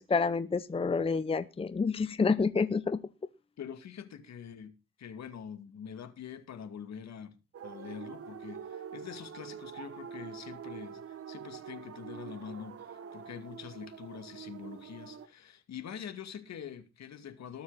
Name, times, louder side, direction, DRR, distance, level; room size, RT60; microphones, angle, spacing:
voice 1, 0.0-3.0, left 4 dB, 20° left, 0.7 m, -28 dB
voice 2, 3.6-4.7 5.0-7.4 7.6-17.6, left 8 dB, 60° left, 2.2 m, -45 dB
sound 1, 7.5-15.3, right 7 dB, 50° right, 1.3 m, -45 dB
19.5 x 7.1 x 4.1 m
cardioid pair, 90°, 30 cm